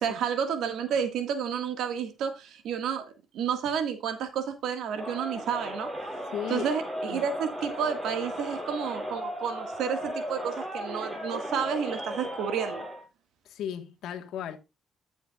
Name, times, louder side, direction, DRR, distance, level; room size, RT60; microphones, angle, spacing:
voice 1, 0.0-3.1 3.3-5.9 6.5-12.8, right 7 dB, 80° right, 1.7 m, -31 dB
Crowd, 4.9-13.1, equal, 20° right, 6.4 m, -36 dB
voice 2, 6.3-6.7 7.1-7.2 13.4-14.6, left 9 dB, 80° left, 1.4 m, -35 dB
13.0 x 7.1 x 2.4 m
cardioid pair, 90°, 0 cm